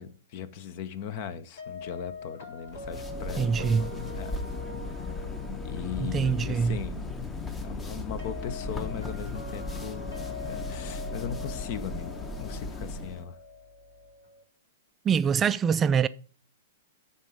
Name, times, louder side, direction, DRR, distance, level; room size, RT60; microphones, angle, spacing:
voice 1, 0.0-4.6 5.6-10.1 10.4-13.4, left 7 dB, 50° left, 0.9 m, -39 dB
sound 1, 1.6-14.4, left 3 dB, 75° left, 3.7 m, -43 dB
sound 2, 2.7-13.2, left 3 dB, 15° left, 0.9 m, -36 dB
voice 2, 3.4-3.9 6.0-6.8 15.1-16.1, right 6 dB, 20° right, 0.3 m, -24 dB
11.0 x 4.2 x 5.1 m
hypercardioid pair, 115°, 0 cm